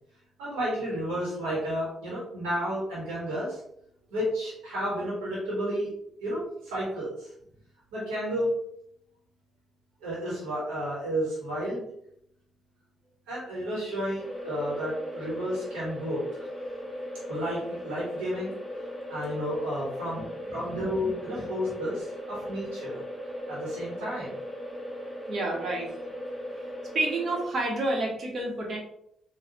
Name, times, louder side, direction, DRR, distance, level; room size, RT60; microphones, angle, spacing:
voice 1, 0.4-3.6 4.1-5.9 6.2-7.3 7.9-8.5 10.0-11.8 13.3-16.5 17.3-18.5 19.1-20.2 20.5-23.0 23.5-24.3, equal, 90° right, -7 dB, 1.4 m, -31 dB
sound 1, 14.2-27.5, equal, 10° right, 1.3 m, -38 dB
voice 2, 20.1-21.5 25.3-25.9 26.9-28.8, right 2 dB, 55° right, -1 dB, 1.3 m, -30 dB
4.0 x 2.6 x 3.0 m, 0.74 s
hypercardioid pair, 50°, 0 cm